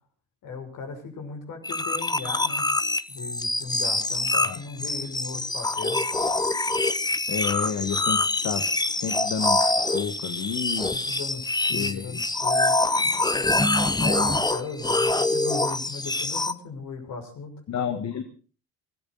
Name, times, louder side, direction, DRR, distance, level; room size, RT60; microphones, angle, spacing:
voice 1, 0.4-2.7 3.1-6.1 10.9-13.7 14.0-17.5 17.9-18.0, left 4 dB, 70° left, 3 dB, 6.3 m, -37 dB
sound 1, 1.6-16.5, left 2 dB, 10° left, 1.0 m, -25 dB
voice 2, 7.3-10.9 11.7-12.2 17.7-18.2, left 7 dB, 50° left, 7 dB, 1.8 m, -31 dB
23.5 x 14.0 x 4.0 m, 0.36 s
supercardioid pair, 70°, 33 cm